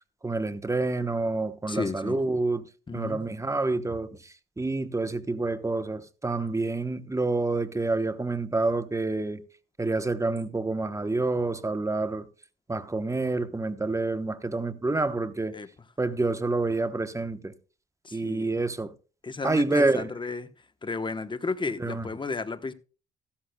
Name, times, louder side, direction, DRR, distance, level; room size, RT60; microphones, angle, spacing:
voice 1, 0.2-2.7 2.9-4.2 4.6-9.4 9.8-12.3 12.7-15.6 16.0-17.5 18.1-18.9 19.4-20.1 21.8-22.1, right 2 dB, 15° right, 1.0 m, -28 dB
voice 2, 1.7-2.2 2.9-3.2 15.5-15.7 18.0-18.5 19.2-20.5 20.8-22.7, left 4 dB, 25° left, 1.0 m, -33 dB
14.5 x 13.0 x 2.2 m
cardioid pair, 90°, 20 cm